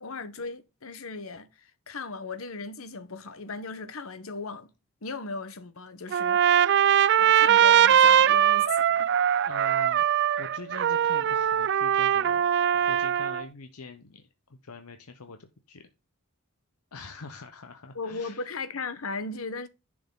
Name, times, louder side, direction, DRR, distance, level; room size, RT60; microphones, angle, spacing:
voice 1, 0.0-4.7 5.0-6.8 7.2-9.1 17.9-19.7, left 3 dB, 70° left, 1.1 m, -37 dB
Trumpet, 6.1-13.4, right 9 dB, 50° right, 0.3 m, -21 dB
voice 2, 9.5-10.1 10.4-12.5 12.7-15.9 16.9-18.5, left 3 dB, 90° left, 1.0 m, -44 dB
10.5 x 6.3 x 3.8 m
head